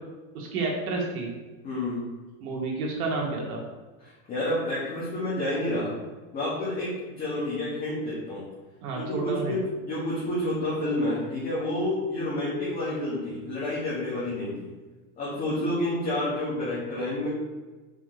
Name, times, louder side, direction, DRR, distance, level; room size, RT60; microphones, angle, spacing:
voice 1, 0.3-1.3 2.4-3.6 8.8-9.6, right 3 dB, 85° right, -2 dB, 2.4 m, -30 dB
voice 2, 1.6-2.0 4.0-5.9 6.3-8.5 8.9-14.7 15.2-17.3, left 1 dB, 20° left, -10 dB, 2.1 m, -29 dB
5.9 x 5.1 x 6.6 m, 1.3 s
supercardioid pair, 175°, 43 cm